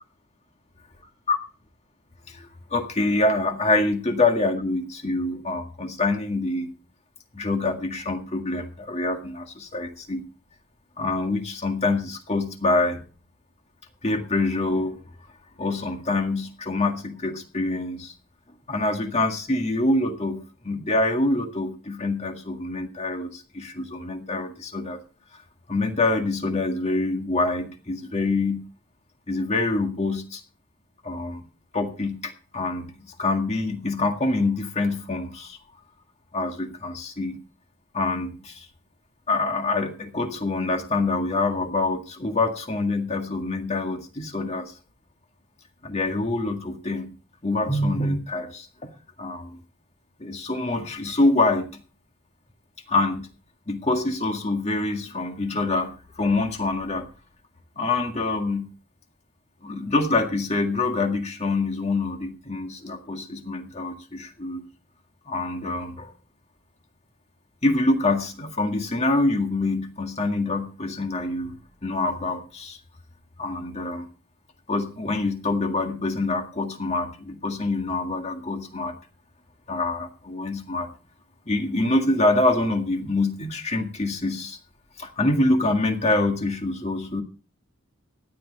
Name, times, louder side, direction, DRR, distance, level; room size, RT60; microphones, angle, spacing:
voice 1, 2.3-6.7 7.3-10.3 11.0-13.0 14.0-15.0 15.6-18.1 18.7-25.0 25.7-28.7 29.3-30.4 31.0-31.4 31.7-35.6 36.3-37.4 37.9-38.7 39.3-44.7 45.8-47.1 47.4-48.9 49.2-49.6 50.2-51.8 52.9-53.3 53.7-57.1 57.8-58.7 59.6-64.6 65.3-66.1 67.6-72.8 73.4-74.1 74.7-79.0 79.7-80.9 81.5-84.6 85.0-87.2, left 2 dB, 30° left, 4 dB, 1.9 m, -25 dB
16.5 x 10.5 x 4.2 m, 0.38 s
head